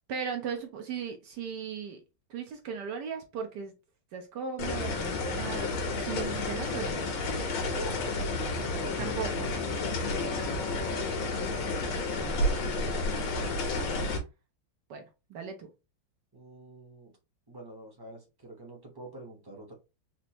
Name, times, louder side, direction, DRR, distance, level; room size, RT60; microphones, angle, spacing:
voice 1, 0.0-2.0 2.3-3.7 4.1-7.1 9.0-9.5 12.1-12.7 14.9-15.0 15.3-15.7, right 6 dB, 65° right, 1.1 m, -37 dB
sound 1, 4.6-14.2, left 2 dB, 85° left, 1.9 m, -31 dB
Wind instrument woodwind instrument, 8.0-13.0, left 3 dB, 70° left, 1.4 m, -46 dB
voice 2, 8.3-9.6 10.1-11.3 16.3-17.1 17.5-19.7, right 1 dB, 20° right, 0.6 m, -45 dB
4.3 x 2.5 x 2.9 m
omnidirectional pair, 2.2 m